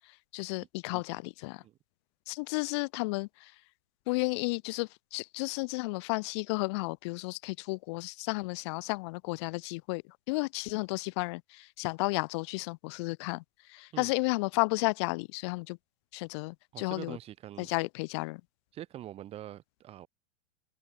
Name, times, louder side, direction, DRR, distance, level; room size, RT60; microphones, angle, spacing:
voice 1, 0.3-1.6 2.3-3.5 4.1-10.0 10.3-13.4 13.7-15.8 16.1-17.2 17.6-18.4, left 27 dB, 25° left, 0.4 m, -33 dB
voice 2, 16.7-17.7 18.7-20.1, right 12 dB, 15° right, 0.7 m, -44 dB
supercardioid pair, 160°, 37 cm